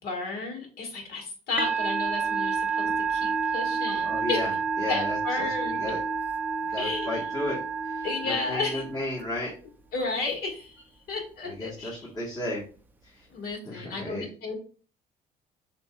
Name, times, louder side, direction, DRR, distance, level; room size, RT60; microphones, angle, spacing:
voice 1, 0.0-4.5 4.9-5.9 6.8-7.2 8.0-8.8 9.9-12.0 13.3-14.6, left 3 dB, 65° left, 1 dB, 1.8 m, -33 dB
Musical instrument, 1.6-9.2, right 5 dB, 10° right, 0.5 m, -29 dB
voice 2, 4.0-6.0 6.7-9.5 11.5-12.6 13.0-13.3 13.6-14.3, left 1 dB, 20° left, -5 dB, 1.4 m, -34 dB
6.6 x 2.8 x 2.3 m, 0.39 s
cardioid pair, 110°, 17 cm